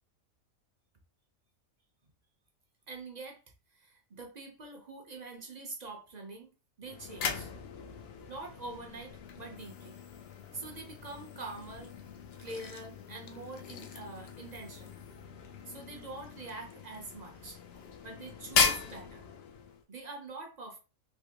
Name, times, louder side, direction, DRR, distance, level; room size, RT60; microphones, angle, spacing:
voice 1, 2.9-3.4 3.7-7.5 8.3-10.0 10.5-11.9 12.4-14.9 15.7-19.3 19.9-20.8, right 3 dB, 40° right, 0.7 m, -45 dB
sound 1, 6.8-19.8, left 5 dB, 60° left, 0.7 m, -37 dB
3.4 x 2.9 x 2.9 m
omnidirectional pair, 1.4 m